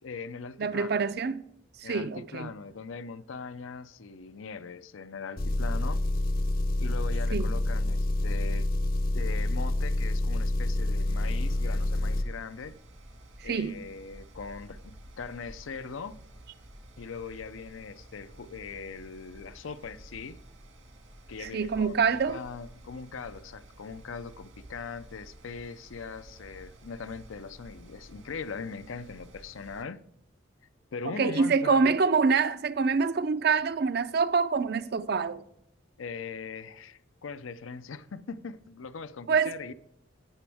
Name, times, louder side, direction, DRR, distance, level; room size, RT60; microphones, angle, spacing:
voice 1, 0.0-1.0 1.8-6.0 6.8-8.7 9.1-12.8 13.4-16.2 17.0-20.4 21.3-22.0 22.3-30.0 30.9-32.0 36.0-39.7, left 5 dB, 90° left, 0.6 m, -40 dB
voice 2, 0.6-1.5 1.8-2.5 7.3-7.5 13.4-13.8 21.4-22.4 31.0-35.4 39.3-39.6, right 5 dB, 50° right, 0.4 m, -26 dB
Engine, 5.4-12.3, left 1 dB, 45° left, 0.6 m, -27 dB
Mechanical fan, 11.1-29.8, right 1 dB, 75° right, 2.0 m, -51 dB
17.0 x 6.1 x 3.5 m
head